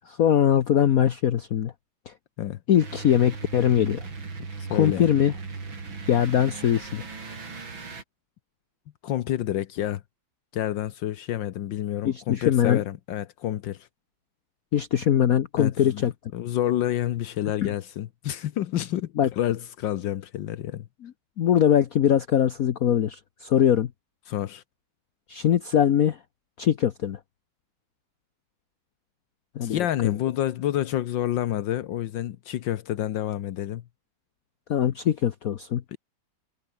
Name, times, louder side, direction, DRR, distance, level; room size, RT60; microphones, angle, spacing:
voice 1, 0.2-1.7 2.1-2.2 2.7-4.0 4.7-5.3 6.1-7.0 12.0-12.8 14.7-16.1 17.6-17.7 19.2-19.3 21.0-21.1 21.4-23.9 25.3-26.2 26.6-27.2 29.6-30.1 34.7-35.8, left 10 dB, 55° left, 1.2 m, -22 dB
sound 1, 2.8-8.0, right 4 dB, 85° right, 4.6 m, -38 dB
voice 2, 4.6-5.1 9.0-10.0 10.5-13.9 15.6-16.1 16.3-20.9 24.3-24.6 29.6-33.8 35.9-36.0, left 12 dB, 75° left, 1.5 m, -28 dB
omnidirectional pair, 2.1 m